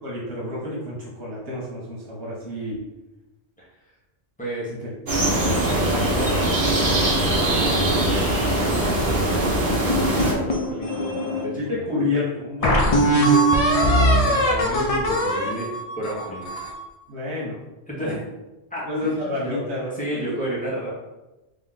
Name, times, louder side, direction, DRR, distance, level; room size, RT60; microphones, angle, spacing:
voice 1, 0.0-2.8 4.7-4.9 11.6-13.9 17.1-17.6 18.0-18.2 18.9-20.4, left 2 dB, 85° right, -5 dB, 1.3 m, -29 dB
voice 2, 4.4-4.7 5.5-11.8 14.2-15.7 16.0-16.5 17.9-18.2 18.7-19.1 19.4-20.9, equal, 5° left, -6 dB, 1.3 m, -32 dB
sound 1, 5.1-10.3, right 1 dB, 55° right, 1.2 m, -21 dB
sound 2, 9.9-11.4 12.0-12.1 12.6-16.8, right 1 dB, 40° left, 0.6 m, -20 dB
3.4 x 3.0 x 3.9 m, 1.0 s
omnidirectional pair, 1.1 m